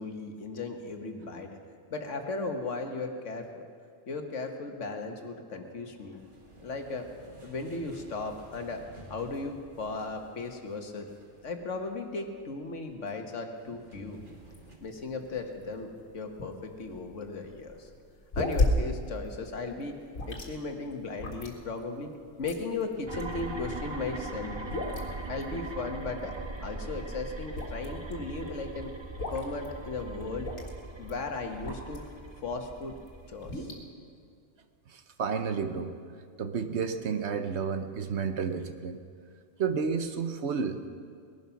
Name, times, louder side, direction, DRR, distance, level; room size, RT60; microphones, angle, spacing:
voice 1, 0.0-1.6 1.9-3.6 4.1-6.2 6.6-7.1 7.4-8.8 9.1-11.1 11.4-14.2 14.8-17.9 18.4-20.0 20.3-22.1 22.4-24.7 25.3-26.3 26.6-28.9 29.3-30.5 31.0-32.9 33.3-33.7, left 3 dB, 70° left, 4 dB, 1.6 m, -36 dB
sound 1, 6.0-14.8, right 2 dB, 40° right, 1.8 m, -54 dB
sound 2, 14.1-32.2 32.7-33.8, left 1 dB, 85° left, 2.3 m, -35 dB
sound 3, 23.1-33.8, right 2 dB, 25° right, 0.7 m, -41 dB
voice 2, 34.9-36.0 36.4-39.0 39.6-40.9, right 6 dB, 60° right, 8 dB, 1.0 m, -31 dB
20.0 x 11.0 x 5.8 m, 2.2 s
omnidirectional pair, 1.3 m